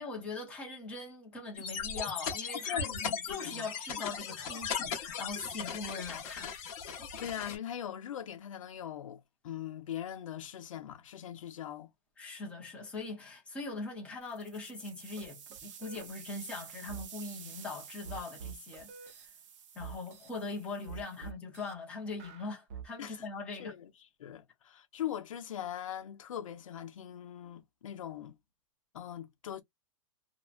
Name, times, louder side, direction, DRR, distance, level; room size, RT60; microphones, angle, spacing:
voice 1, 0.0-6.5 12.2-19.3 19.7-23.7, left 3 dB, 5° left, 0.7 m, -41 dB
sound 1, 1.5-7.6, left 6 dB, 25° left, 1.0 m, -37 dB
voice 2, 2.7-3.7 7.2-11.9 21.2-21.3 23.0-23.9 24.2-28.4 28.9-29.6, left 10 dB, 65° left, 0.8 m, -41 dB
sound 2, 14.2-21.3, right 8 dB, 60° right, 0.7 m, -51 dB
sound 3, 15.2-15.3 15.5-16.1 16.9-17.1 18.0-19.3 19.8-20.3 20.9-21.7 22.2-22.9, right 7 dB, 25° right, 0.4 m, -45 dB
2.7 x 2.2 x 2.5 m
supercardioid pair, 175°, 18 cm